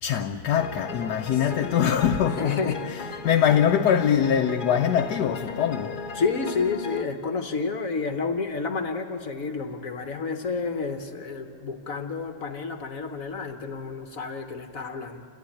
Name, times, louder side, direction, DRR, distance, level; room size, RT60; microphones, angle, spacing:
voice 1, 0.0-6.0, left 8 dB, 80° left, 1.3 m, -23 dB
sound 1, 0.6-7.0, left 5 dB, 40° left, 0.8 m, -36 dB
voice 2, 1.3-1.7 2.4-2.8 6.1-15.3, left 4 dB, 60° left, 1.4 m, -30 dB
29.5 x 14.5 x 8.7 m
omnidirectional pair, 1.7 m